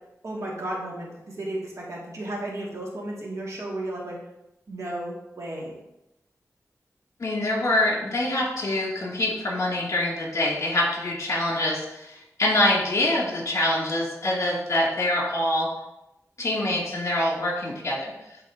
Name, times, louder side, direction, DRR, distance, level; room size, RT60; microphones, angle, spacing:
voice 1, 0.2-4.2 4.7-5.7, right 1 dB, 60° right, -3 dB, 1.9 m, -33 dB
voice 2, 7.2-15.7 16.4-18.1, left 1 dB, 60° left, -4 dB, 2.2 m, -25 dB
11.0 x 4.1 x 2.6 m, 0.89 s
wide cardioid pair, 100°, 6 cm